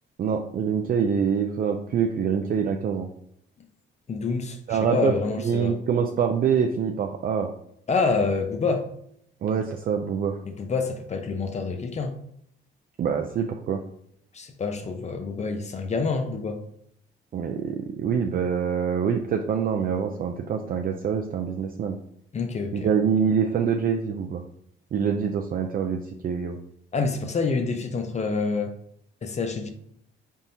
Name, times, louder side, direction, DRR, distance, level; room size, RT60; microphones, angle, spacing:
voice 1, 0.2-3.1 4.7-7.5 9.4-10.4 13.0-13.8 17.3-22.0 22.7-24.4 24.9-26.6, right 7 dB, 45° right, 3 dB, 0.4 m, -25 dB
voice 2, 4.1-5.8 7.9-8.9 10.5-12.2 14.3-16.6 22.3-22.9 26.9-28.7 29.2-29.7, left 4 dB, 35° left, 6 dB, 0.6 m, -27 dB
4.0 x 3.6 x 2.8 m, 0.73 s
cardioid pair, 90°, 20 cm